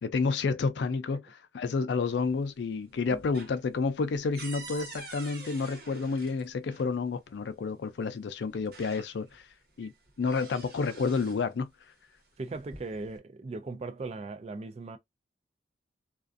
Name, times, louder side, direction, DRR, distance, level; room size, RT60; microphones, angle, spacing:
voice 1, 0.0-9.4 9.8-9.9 10.2-11.7, left 4 dB, 75° left, 0.4 m, -30 dB
sound 1, 1.9-2.6 2.9-6.9 8.0-8.1 8.5-9.4 9.8-11.5 12.4-13.2, right 3 dB, 60° right, 1.0 m, -47 dB
voice 2, 12.4-15.0, right 3 dB, 35° right, 0.4 m, -38 dB
2.4 x 2.3 x 2.4 m
head